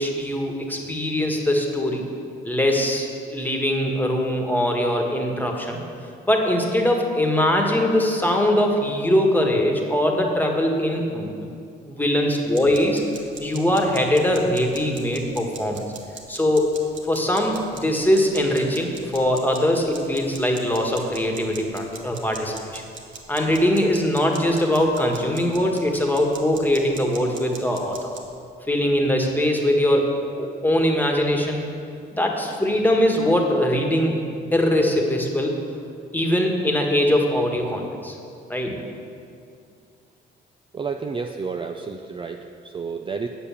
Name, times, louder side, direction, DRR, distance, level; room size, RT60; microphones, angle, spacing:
voice 1, 0.0-2.0 2.4-5.8 6.2-11.5 11.9-13.0 13.4-15.8 16.3-16.7 17.1-22.8 23.3-28.1 28.7-31.6 32.1-34.2 34.5-35.6 36.1-38.1 38.5-38.8, left 1 dB, 10° left, 1 dB, 1.5 m, -22 dB
sound 1, 12.6-28.3, right 5 dB, 75° right, 1.3 m, -42 dB
voice 2, 40.7-43.3, right 5 dB, 25° right, 5 dB, 0.5 m, -31 dB
8.4 x 7.1 x 7.1 m, 2.4 s
cardioid pair, 90°, 20 cm